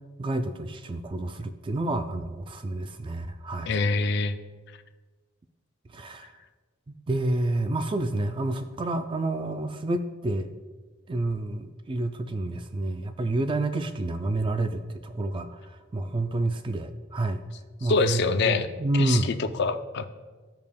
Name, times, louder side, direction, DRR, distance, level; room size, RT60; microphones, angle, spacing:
voice 1, 0.2-3.7 5.9-6.3 6.9-10.5 11.1-15.6 15.9-17.4 17.8-19.3, right 2 dB, 25° right, 8 dB, 0.3 m, -29 dB
voice 2, 3.7-4.3 17.8-18.7 19.0-20.1, left 4 dB, 55° left, 10 dB, 0.5 m, -25 dB
14.0 x 5.2 x 2.3 m, 1.3 s
head